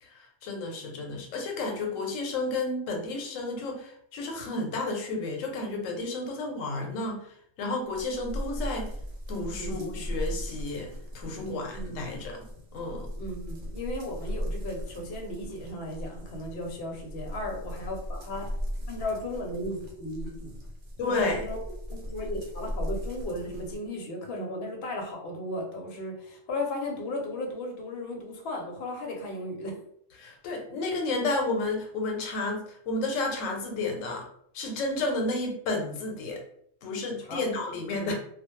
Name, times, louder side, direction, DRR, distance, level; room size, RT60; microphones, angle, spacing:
voice 1, 0.0-8.9 9.3-12.4 12.7-13.1 21.0-21.5 30.2-34.2 34.5-36.4 36.8-38.1, left 2 dB, 90° left, 2 dB, 1.0 m, -32 dB
sound 1, 7.9-23.8, equal, 55° right, 0.6 m, -37 dB
voice 2, 9.6-9.9 11.4-12.1 13.2-18.5 18.9-20.6 21.0-21.6 21.9-29.8 37.2-37.6 38.0-38.1, left 1 dB, 55° left, 1 dB, 0.8 m, -35 dB
2.3 x 2.1 x 3.0 m, 0.67 s
omnidirectional pair, 1.3 m